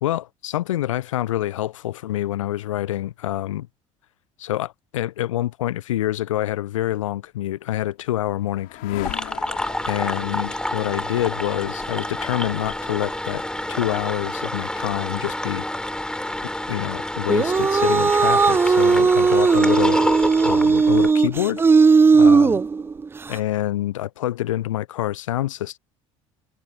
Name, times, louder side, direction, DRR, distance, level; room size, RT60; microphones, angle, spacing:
voice 1, 0.0-3.7 4.4-9.1 9.9-13.4 13.7-15.7 16.7-20.0 20.4-21.6 22.1-22.6 23.3-25.8, left 13 dB, 75° left, 0.5 m, -26 dB
sound 1, 7.6-17.5, left 21 dB, 55° left, 2.6 m, -43 dB
sound 2, 9.0-21.1, left 1 dB, 5° left, 3.4 m, -28 dB
sound 3, 17.3-23.3, right 5 dB, 15° right, 0.4 m, -17 dB
figure-of-eight pair, 65°, 16 cm